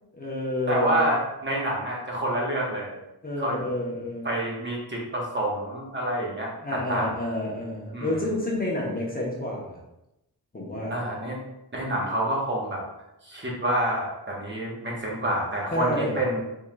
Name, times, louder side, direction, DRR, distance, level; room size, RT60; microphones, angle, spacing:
voice 1, 0.2-1.1 3.2-4.4 6.6-9.8 10.5-11.0 15.7-16.2, left 1 dB, 25° left, -4 dB, 0.8 m, -29 dB
voice 2, 0.7-3.0 3.4-3.6 4.2-7.1 7.9-8.2 10.9-11.4 11.7-12.8 13.2-16.4, right 1 dB, 30° right, -3 dB, 1.1 m, -28 dB
4.3 x 3.7 x 2.2 m, 0.90 s
wide cardioid pair, 110°, 38 cm